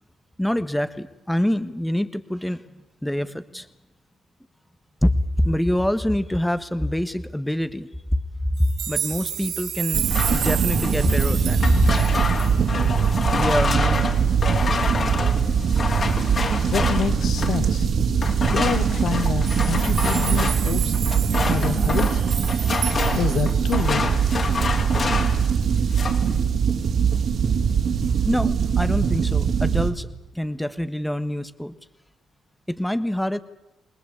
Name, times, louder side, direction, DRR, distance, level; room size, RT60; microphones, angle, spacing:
voice 1, 0.4-2.6 3.0-3.7 5.0-5.1 5.4-7.9 8.6-11.8 13.3-14.1 28.2-30.1 30.3-31.7 32.7-33.4, left 1 dB, 5° left, 13 dB, 1.3 m, -25 dB
sound 1, 8.6-13.1 13.5-13.6 13.9-14.0 14.4-14.9 16.0-16.2 17.9-18.0 18.2-18.3 19.2-24.0 24.5-24.6, right 10 dB, 75° right, 2.3 m, -32 dB
sound 2, 9.9-17.7 18.2-25.5 25.7-26.3, left 4 dB, 45° left, 4.0 m, -28 dB
sound 3, 9.9-29.9, right 6 dB, 60° right, 3.6 m, -22 dB
voice 2, 16.7-17.9 18.5-21.0 21.5-22.2 23.1-24.1, left 8 dB, 65° left, 11 dB, 2.0 m, -27 dB
28.5 x 19.5 x 8.6 m, 0.97 s
cardioid pair, 90°, 0 cm